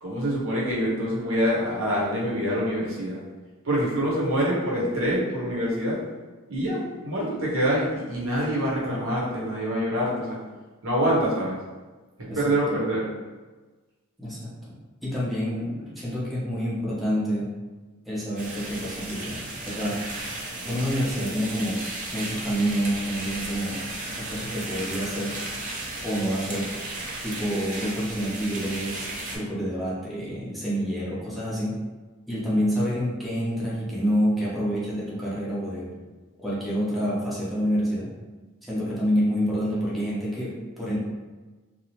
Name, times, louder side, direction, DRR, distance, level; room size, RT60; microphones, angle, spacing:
voice 1, 0.0-3.2 3.6-6.0 6.5-10.4 10.8-11.6 12.4-13.1, equal, 80° right, -5 dB, 0.8 m, -25 dB
voice 2, 14.2-14.7 15.0-17.5 18.1-20.3 20.6-21.8 22.1-25.4 26.0-26.7 27.2-31.8 32.3-35.9 36.4-38.1 38.6-41.0, equal, ahead, -9 dB, 0.6 m, -28 dB
sound 1, 18.4-29.4, right 2 dB, 40° right, 0.5 m, -35 dB
2.8 x 2.0 x 2.9 m, 1.3 s
head